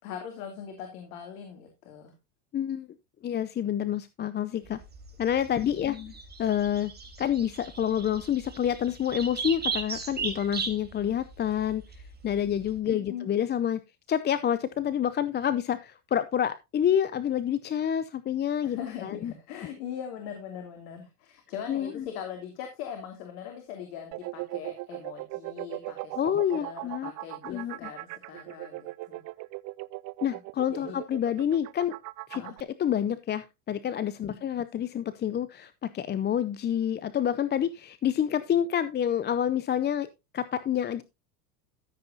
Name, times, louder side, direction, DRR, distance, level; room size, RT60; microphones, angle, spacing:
voice 1, 0.0-2.1 5.6-6.1 12.9-13.3 18.6-26.2 26.5-29.2 30.7-31.0 32.3-32.6, left 8 dB, 70° left, 4 dB, 2.8 m, -41 dB
voice 2, 2.5-2.9 3.2-4.8 5.2-6.0 6.4-6.9 7.2-11.8 12.2-13.8 14.1-19.3 21.7-22.1 26.2-27.1 27.4-27.9 30.2-32.0 32.3-40.1 40.3-41.0, left 9 dB, 20° left, 15 dB, 0.5 m, -28 dB
sound 1, 4.6-12.8, right 5 dB, 20° right, 3.7 m, -37 dB
sound 2, 24.1-32.6, right 21 dB, 40° right, 0.4 m, -38 dB
14.0 x 7.8 x 2.7 m, 0.24 s
hypercardioid pair, 100°, 48 cm